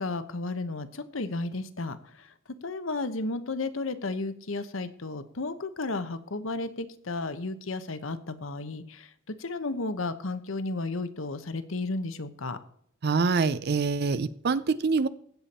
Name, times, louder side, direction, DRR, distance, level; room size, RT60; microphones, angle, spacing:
voice 1, 0.0-2.3 2.6-12.6, left 3 dB, 75° left, 11 dB, 1.0 m, -33 dB
voice 2, 13.0-15.1, right 4 dB, 50° right, 16 dB, 0.5 m, -25 dB
16.0 x 7.0 x 4.3 m, 0.64 s
head